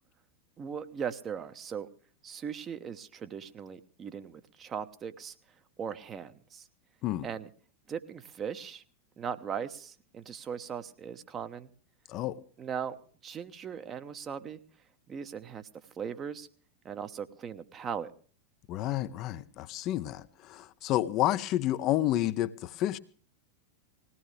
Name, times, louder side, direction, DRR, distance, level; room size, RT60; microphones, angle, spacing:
voice 1, 0.6-1.9 2.2-5.3 5.8-6.7 7.2-7.5 7.9-8.8 9.2-11.7 12.6-13.0 13.2-14.6 15.1-15.7 16.0-16.5 16.8-18.1, right 7 dB, 25° right, 0.9 m, -38 dB
voice 2, 12.1-12.4 18.7-23.0, left 13 dB, 35° left, 0.6 m, -30 dB
20.5 x 17.0 x 3.3 m
figure-of-eight pair, 90°, 0 cm